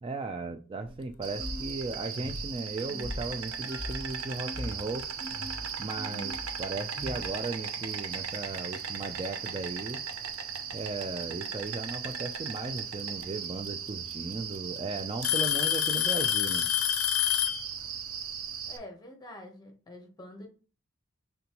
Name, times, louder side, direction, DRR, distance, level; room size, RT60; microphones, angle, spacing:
voice 1, 0.0-5.1 5.8-10.0 10.7-16.7, right 3 dB, 25° right, 0.3 m, -36 dB
sound 1, 0.9-7.3, left 1 dB, 50° right, 2.3 m, -41 dB
Insect, 1.2-18.8, right 7 dB, 75° right, 0.6 m, -38 dB
Alarm / Tick-tock, 3.7-3.9 4.8-4.9 5.7-5.8 7.5-7.6 8.8-8.9 10.1-10.6 12.3-12.4 13.7-13.8 14.1-14.6 15.2-17.7, left 12 dB, 80° left, 0.4 m, -27 dB
voice 2, 18.7-20.5, left 1 dB, 20° left, 1.0 m, -46 dB
5.3 x 3.3 x 2.9 m
head